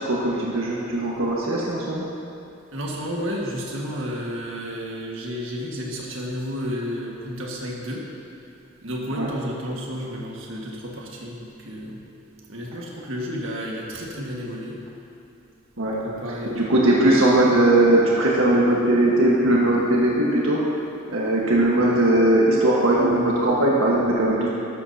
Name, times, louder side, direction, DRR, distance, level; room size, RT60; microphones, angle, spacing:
voice 1, 0.0-2.0 9.2-9.3 15.8-16.0 16.5-20.6 21.1-24.5, right 1 dB, 90° right, -5 dB, 1.4 m, -19 dB
voice 2, 2.7-8.1 8.8-12.0 12.5-14.8 16.0-17.2, equal, 70° right, -3 dB, 1.7 m, -32 dB
13.0 x 12.5 x 2.8 m, 2.8 s
head